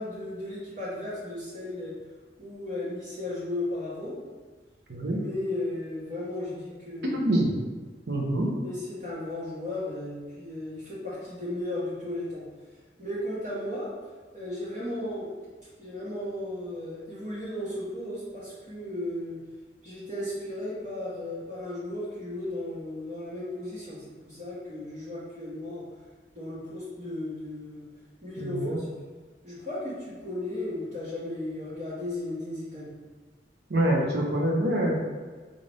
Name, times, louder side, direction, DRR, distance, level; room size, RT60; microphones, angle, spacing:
voice 1, 0.0-1.9 2.4-4.2 5.1-7.4 8.6-12.4 13.0-13.9 14.3-15.3 15.8-19.4 19.8-25.9 26.3-27.9 28.2-28.9 29.4-32.9, left 1 dB, 40° right, -11 dB, 1.1 m, -35 dB
voice 2, 7.1-7.5 8.1-8.6 28.4-28.8 33.7-35.0, right 1 dB, 65° right, -1 dB, 0.7 m, -25 dB
3.9 x 2.5 x 3.3 m, 1.4 s
head